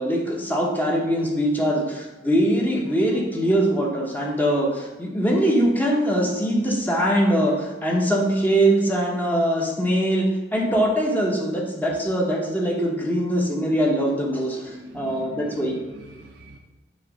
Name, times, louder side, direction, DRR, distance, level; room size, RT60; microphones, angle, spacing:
voice 1, 0.0-10.3 10.5-15.8, right 1 dB, 10° left, -1 dB, 1.0 m, -22 dB
voice 2, 14.7-15.6 15.9-16.6, right 2 dB, 75° right, -1 dB, 0.6 m, -42 dB
6.5 x 3.1 x 5.1 m, 1.1 s
head